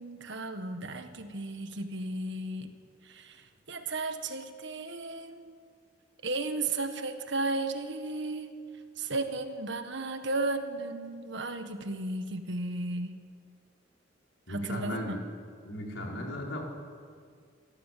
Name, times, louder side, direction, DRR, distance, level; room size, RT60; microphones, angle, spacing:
voice 1, 0.0-2.7 3.0-5.6 6.2-8.5 9.0-13.2 14.5-15.2, right 2 dB, 65° right, 7 dB, 1.6 m, -34 dB
voice 2, 14.5-15.2 15.6-16.6, left 1 dB, 70° left, -1 dB, 4.9 m, -36 dB
27.5 x 13.5 x 7.7 m, 2.1 s
head